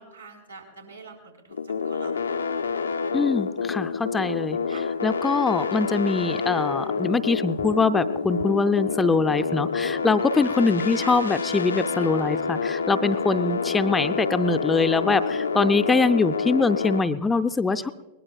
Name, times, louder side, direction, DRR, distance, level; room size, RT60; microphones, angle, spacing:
voice 1, 0.0-2.2 3.7-4.0 4.7-4.9 9.8-10.1 11.0-11.2 15.2-15.7, right 4 dB, 85° right, -1 dB, 4.5 m, -45 dB
sound 1, 1.5-17.0, left 5 dB, 75° left, 0.6 m, -28 dB
voice 2, 3.1-4.6 5.0-17.9, left 4 dB, 10° left, 10 dB, 0.5 m, -23 dB
21.5 x 20.0 x 2.4 m, 1.2 s
figure-of-eight pair, 95°, 0 cm